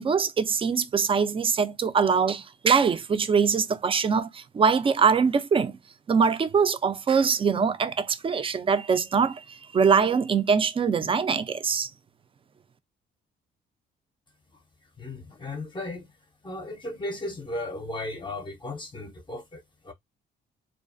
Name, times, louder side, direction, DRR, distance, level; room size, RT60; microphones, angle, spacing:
voice 1, 0.0-5.7 6.1-11.9, right 6 dB, 25° right, 0.3 m, -23 dB
voice 2, 15.0-16.1 16.4-19.9, left 2 dB, 25° left, 0.6 m, -36 dB
2.3 x 2.1 x 2.5 m
cardioid pair, 90°, 20 cm